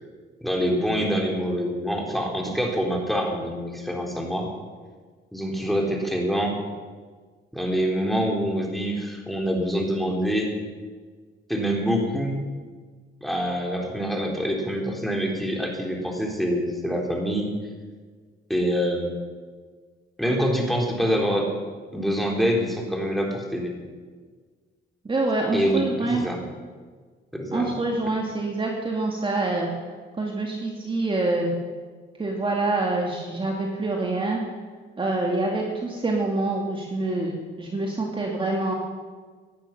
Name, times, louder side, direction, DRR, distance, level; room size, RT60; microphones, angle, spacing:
voice 1, 0.4-4.5 5.3-6.5 7.5-10.5 11.5-12.4 13.2-17.5 18.5-19.1 20.2-21.5 21.9-23.7 25.5-26.4 27.3-27.7, equal, ahead, 0 dB, 3.6 m, -25 dB
voice 2, 25.0-26.2 27.5-29.7 30.2-31.5 32.2-34.4 35.0-37.3 37.6-38.7, right 2 dB, 25° right, 0 dB, 2.2 m, -26 dB
17.0 x 10.5 x 5.8 m, 1.5 s
cardioid pair, 90°, 20 cm